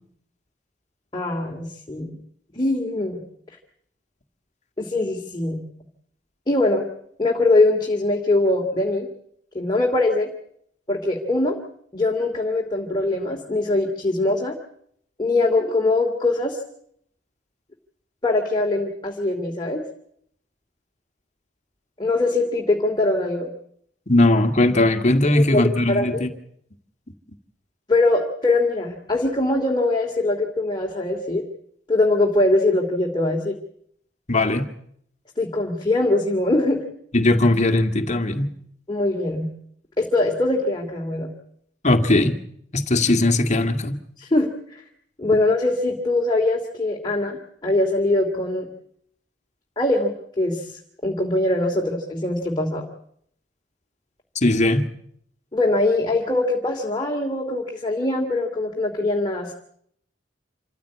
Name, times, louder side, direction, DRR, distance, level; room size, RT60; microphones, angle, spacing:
voice 1, 1.1-2.2 2.5-3.2 4.8-5.6 6.5-6.9 7.2-9.1 9.5-10.3 10.9-11.6 11.9-14.6 15.2-16.6 18.2-19.8 22.0-23.5 25.3-25.6 25.9-26.2 27.9-31.4 31.9-33.6 35.4-36.8 38.9-39.5 40.0-41.3 44.2-44.8 45.2-48.7 49.8-52.9 55.5-59.5, left 2 dB, 25° left, 1 dB, 2.8 m, -22 dB
voice 2, 24.1-26.3 34.3-34.7 37.1-38.5 41.8-42.4 42.7-44.0 54.4-54.9, left 2 dB, 40° left, 6 dB, 2.1 m, -19 dB
27.5 x 15.0 x 8.5 m, 0.70 s
head